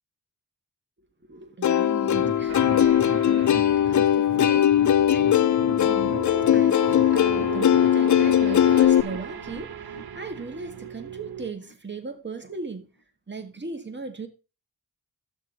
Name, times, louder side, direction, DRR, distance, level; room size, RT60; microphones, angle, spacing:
voice 1, 1.3-12.9 13.3-14.3, right 3 dB, 30° right, 1.8 m, -38 dB
Plucked string instrument, 1.6-9.0, left 10 dB, 50° left, 0.5 m, -20 dB
sound 1, 2.0-11.3 11.6-11.7 12.1-12.2, equal, 90° left, 2.9 m, -40 dB
sound 2, 2.5-11.5, right 9 dB, 75° right, 1.0 m, -37 dB
12.5 x 8.9 x 4.0 m
cardioid pair, 80°, 38 cm